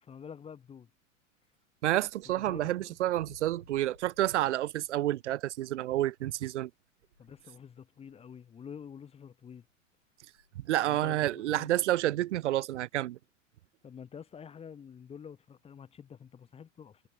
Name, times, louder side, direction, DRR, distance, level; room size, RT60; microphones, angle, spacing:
voice 1, 0.0-0.9 2.2-2.7 7.2-9.7 10.8-11.7 13.8-17.0, left 7 dB, 15° left, 0.9 m, -48 dB
voice 2, 1.8-6.7 10.6-13.2, right 14 dB, 65° right, 0.8 m, -29 dB
sound 1, 1.9-8.3 8.6-8.8 9.4-10.8 11.1-11.2 11.6-11.7 12.2-12.7, left 5 dB, 85° left, 4.2 m, -63 dB
figure-of-eight pair, 95°, 39 cm